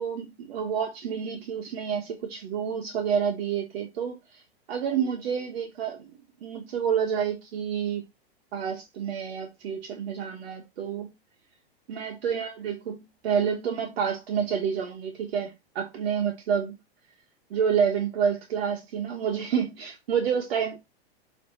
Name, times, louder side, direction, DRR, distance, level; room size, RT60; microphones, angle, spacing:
voice 1, 0.0-4.2 4.7-6.1 6.4-8.0 8.5-11.1 11.9-13.0 13.2-16.7 17.5-20.8, right 7 dB, 70° right, 1.6 m, -28 dB
7.6 x 3.4 x 4.2 m
hypercardioid pair, 120°, 31 cm